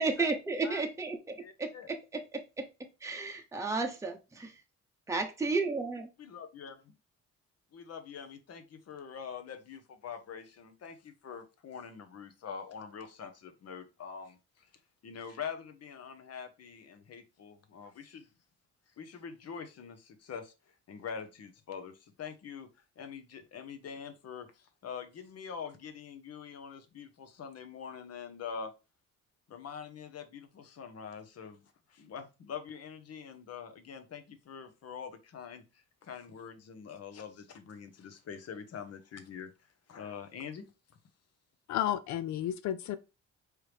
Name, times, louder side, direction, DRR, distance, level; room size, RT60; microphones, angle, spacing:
voice 1, 0.0-2.7 3.0-4.5 5.1-6.1, right 3 dB, 10° right, 0.8 m, -33 dB
voice 2, 1.4-1.9 6.2-6.9 7.7-14.7 15.0-18.3 19.0-20.5 20.9-22.7 23.0-28.7 29.5-31.6 31.9-39.5 39.9-40.7, left 6 dB, 55° left, 1.0 m, -44 dB
voice 3, 41.7-43.0, left 11 dB, 70° left, 0.4 m, -32 dB
4.6 x 3.3 x 3.3 m
cardioid pair, 90°, 30 cm